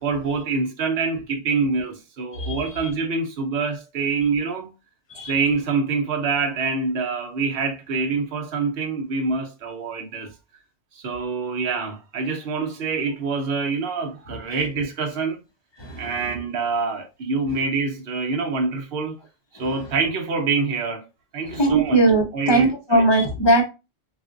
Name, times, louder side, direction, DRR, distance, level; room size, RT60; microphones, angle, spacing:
voice 1, 0.0-4.7 5.3-10.3 10.9-15.4 16.0-19.1 19.6-21.1 21.3-22.0 22.3-23.0, right 4 dB, 65° right, 1.0 m, -25 dB
voice 2, 2.3-2.9 5.1-5.3 14.5-14.7 15.8-16.4 19.6-19.8 21.4-23.6, right 2 dB, 30° left, 0.6 m, -21 dB
3.4 x 2.5 x 2.5 m
omnidirectional pair, 1.1 m